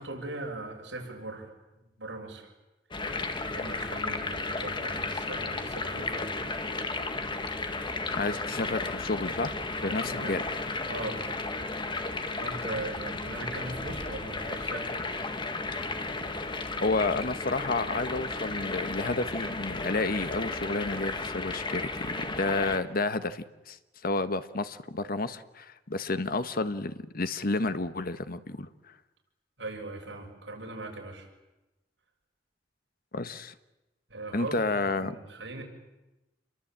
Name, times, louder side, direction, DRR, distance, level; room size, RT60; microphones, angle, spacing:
voice 1, 0.0-1.5 2.0-2.5 3.5-6.4 9.9-10.4 10.9-11.3 12.4-15.0 29.6-31.3 34.1-34.5 34.9-35.6, right 2 dB, 75° right, 1 dB, 7.0 m, -39 dB
sound 1, 2.9-22.8, left 3 dB, 25° left, 1.8 m, -34 dB
voice 2, 8.1-9.6 9.8-10.7 16.8-23.8 24.0-28.7 33.1-33.5 34.3-35.1, left 3 dB, 55° left, 11 dB, 1.3 m, -30 dB
28.5 x 23.0 x 8.9 m, 1.0 s
head